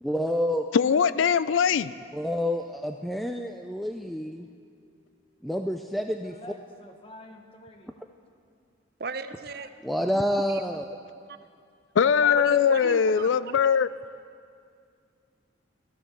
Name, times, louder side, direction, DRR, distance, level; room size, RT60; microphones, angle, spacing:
voice 1, 0.0-0.7 2.1-4.5 5.4-6.3 9.8-10.9, equal, ahead, 4 dB, 0.4 m, -28 dB
voice 2, 0.7-1.9 12.0-13.9, left 7 dB, 85° left, 16 dB, 0.4 m, -21 dB
voice 3, 4.7-5.5 6.2-7.9 12.0-13.6, left 1 dB, 30° left, 4 dB, 1.3 m, -49 dB
voice 4, 9.0-9.7 12.4-13.6, right 4 dB, 55° right, 11 dB, 0.6 m, -37 dB
15.5 x 13.5 x 6.7 m, 2.3 s
head